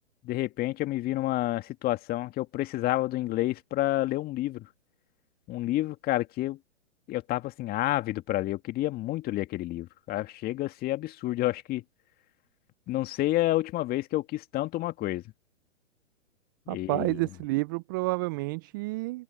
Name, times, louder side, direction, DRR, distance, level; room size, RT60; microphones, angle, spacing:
voice 1, 0.2-4.7 5.5-6.6 7.1-11.8 12.9-15.2 16.7-17.2, left 16 dB, 25° left, 2.2 m, -29 dB
voice 2, 16.7-19.2, right 24 dB, 20° right, 0.4 m, -30 dB
open air
hypercardioid pair, 125°, 37 cm